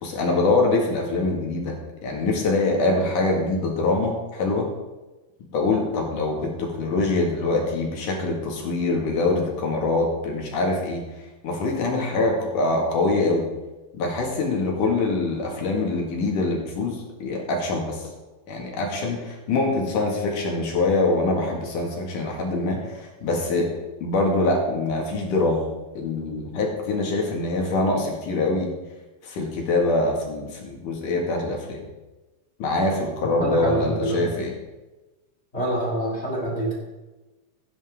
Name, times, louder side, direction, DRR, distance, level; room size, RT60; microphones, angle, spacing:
voice 1, 0.0-1.8 2.0-4.7 5.5-11.0 11.4-13.5 13.9-18.0 18.5-23.7 24.0-25.6 25.9-28.7 29.2-31.8 32.6-34.5, left 2 dB, 60° left, 0 dB, 3.2 m, -24 dB
voice 2, 33.4-34.3 35.5-36.7, right 1 dB, 20° left, -2 dB, 1.9 m, -26 dB
16.0 x 10.0 x 3.7 m, 1.1 s
omnidirectional pair, 4.6 m